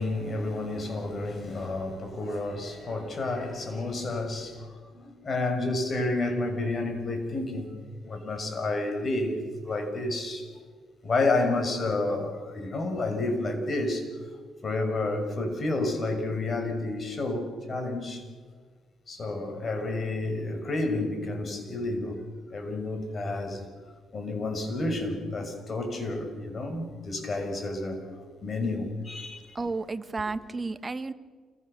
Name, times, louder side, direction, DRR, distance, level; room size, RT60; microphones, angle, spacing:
voice 1, 0.0-7.7 8.0-10.5 11.0-14.0 14.6-18.2 19.1-22.2 22.5-23.7 24.1-28.1 28.4-29.6, left 2 dB, 40° left, 6.0 m, -30 dB
voice 2, 29.5-31.1, right 3 dB, 25° right, 1.4 m, -32 dB
28.5 x 22.5 x 6.9 m
cardioid pair, 90°, 0 cm